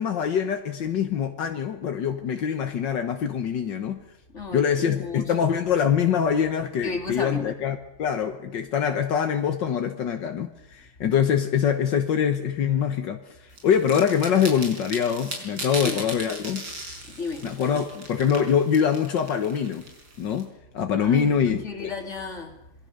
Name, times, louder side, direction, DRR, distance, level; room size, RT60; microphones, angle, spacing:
voice 1, 0.0-4.0 4.5-16.7 17.4-19.8 20.2-21.9, left 8 dB, 75° left, 1.9 m, -24 dB
voice 2, 4.3-5.3 6.8-7.6 15.8-16.0 17.0-17.5 21.0-22.6, left 4 dB, 40° left, 3.6 m, -33 dB
sound 1, 13.6-20.4, right 2 dB, 90° right, 6.0 m, -37 dB
26.5 x 22.0 x 6.7 m
omnidirectional pair, 2.0 m